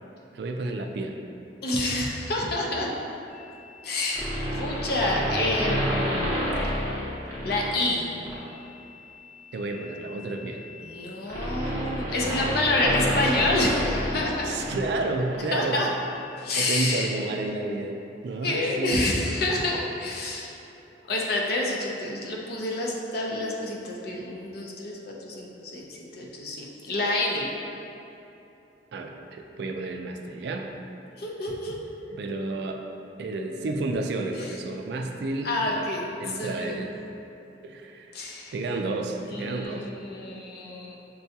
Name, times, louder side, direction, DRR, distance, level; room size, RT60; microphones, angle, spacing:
voice 1, 0.3-1.2 9.5-10.6 14.4-15.9 16.6-18.0 18.2-19.1 28.9-30.7 32.1-32.8 33.2-35.9 36.2-37.0 37.6-38.1 38.5-39.9, right 2 dB, 65° right, 3 dB, 0.3 m, -31 dB
voice 2, 1.6-2.9 3.8-6.3 7.4-8.1 10.8-14.6 15.5-15.9 16.4-17.1 18.4-20.5 21.1-25.9 26.1-27.5 31.2-31.8 35.4-36.8 38.1-38.5 39.3-41.0, left 2 dB, 60° left, -2 dB, 0.6 m, -28 dB
sound 1, 4.1-7.8 8.3-8.5 9.7-15.1 15.3-15.4, equal, 15° left, 0.8 m, -29 dB
6.5 x 2.3 x 2.7 m, 2.9 s
head